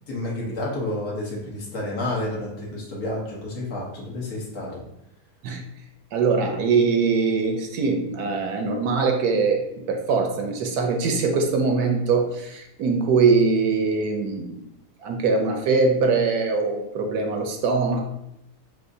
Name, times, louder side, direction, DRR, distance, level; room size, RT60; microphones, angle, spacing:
voice 1, 0.1-4.8, left 1 dB, 65° left, -4 dB, 1.6 m, -30 dB
voice 2, 6.1-9.6 9.9-14.6 15.0-18.0, right 4 dB, 75° right, 3 dB, 1.1 m, -22 dB
6.3 x 2.5 x 2.6 m, 0.82 s
omnidirectional pair, 1.7 m